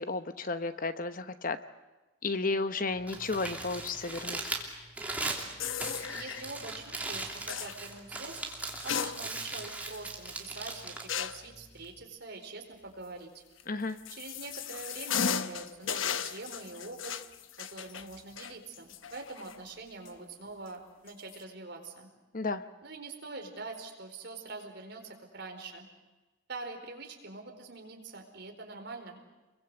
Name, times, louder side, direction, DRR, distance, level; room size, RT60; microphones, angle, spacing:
voice 1, 0.0-1.6 2.2-4.4 13.7-14.0 22.3-22.6, left 3 dB, 45° left, 11 dB, 1.0 m, -33 dB
Crumpling crinkling, 2.9-12.0, right 2 dB, 10° right, 3.0 m, -39 dB
sound 1, 5.6-6.5 7.5-7.8 8.7-9.6 9.9-10.0 11.1-11.5 13.6-19.7 20.1-20.2 21.1-21.4, left 7 dB, 75° left, 1.0 m, -36 dB
voice 2, 5.8-8.4 8.8-13.3 14.1-17.1 17.6-22.1 22.8-25.9 26.5-29.2, right 3 dB, 55° right, 3 dB, 4.6 m, -44 dB
29.0 x 22.5 x 8.0 m, 1.1 s
head